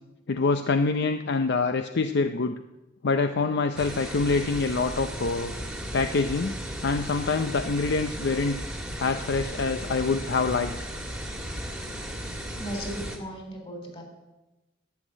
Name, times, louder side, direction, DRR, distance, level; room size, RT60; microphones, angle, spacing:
voice 1, 0.3-2.6 3.0-5.5 5.9-6.5 6.8-8.6 9.0-10.7, left 4 dB, 60° left, 8 dB, 0.6 m, -25 dB
sound 1, 3.8-13.2, equal, 5° right, 1.8 m, -35 dB
voice 2, 12.6-14.0, right 1 dB, 30° left, 3 dB, 3.7 m, -36 dB
11.5 x 8.2 x 9.8 m, 1.0 s
head